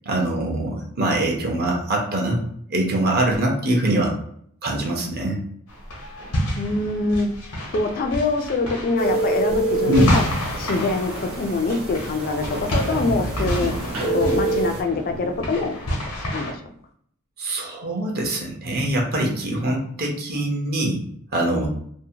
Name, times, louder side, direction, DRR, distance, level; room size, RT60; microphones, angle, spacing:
voice 1, 0.0-2.4 2.7-4.1 4.6-5.4 9.9-10.1 17.4-21.0 21.3-21.7, right 1 dB, 45° right, -1 dB, 0.7 m, -23 dB
sound 1, 5.7-16.5, equal, 85° left, 0.9 m, -29 dB
voice 2, 6.6-7.3 7.7-10.2 10.6-13.7 14.1-16.0 16.3-16.6, left 3 dB, 40° left, 4 dB, 0.3 m, -24 dB
sound 2, 9.0-14.8, right 2 dB, 80° right, 1.0 m, -27 dB
sound 3, 11.7-11.8 12.1-15.8, right 1 dB, 30° right, 0.4 m, -32 dB
2.7 x 2.1 x 2.7 m, 0.66 s
head